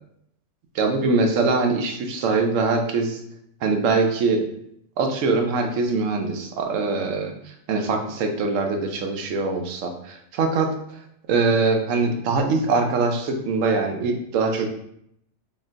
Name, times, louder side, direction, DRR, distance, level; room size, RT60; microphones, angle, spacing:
voice 1, 0.7-3.2 3.6-4.5 5.0-10.7 11.3-14.7, right 3 dB, 80° right, 4 dB, 1.0 m, -23 dB
3.9 x 3.5 x 2.5 m, 0.74 s
omnidirectional pair, 1.3 m